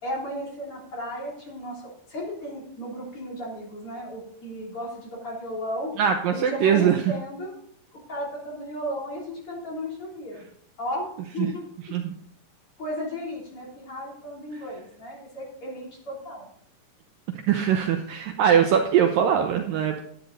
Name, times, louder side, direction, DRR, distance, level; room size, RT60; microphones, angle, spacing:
voice 1, 0.0-5.9 6.3-7.5 7.9-10.4 10.8-11.6 12.8-16.5, equal, 35° left, -3 dB, 3.7 m, -34 dB
voice 2, 6.0-7.0 11.4-11.5 11.9-12.1 17.5-20.0, right 8 dB, 90° right, 4 dB, 1.9 m, -21 dB
11.5 x 9.2 x 4.0 m, 0.64 s
omnidirectional pair, 5.1 m